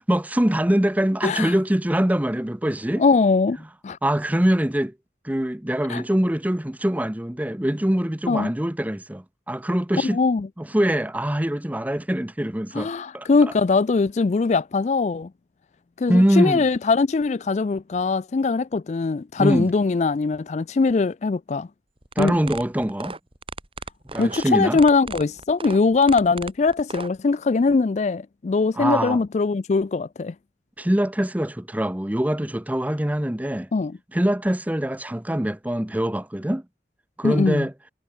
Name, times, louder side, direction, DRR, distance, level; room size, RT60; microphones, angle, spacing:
voice 1, 0.0-3.0 4.0-4.9 5.2-10.2 10.6-13.5 16.1-16.6 19.4-19.7 22.2-23.1 24.1-24.8 28.7-29.2 30.8-33.7 34.1-36.6 37.2-37.7, right 1 dB, 10° right, 0.7 m, -23 dB
voice 2, 1.2-1.5 3.0-3.6 3.8-4.0 5.9-6.0 8.3-8.5 10.0-10.5 12.7-15.3 16.0-21.7 22.2-22.4 24.2-30.3 33.7-34.0 37.2-37.7, left 4 dB, 40° left, 0.4 m, -21 dB
sound 1, 22.0-27.1, right 3 dB, 30° right, 4.2 m, -35 dB
head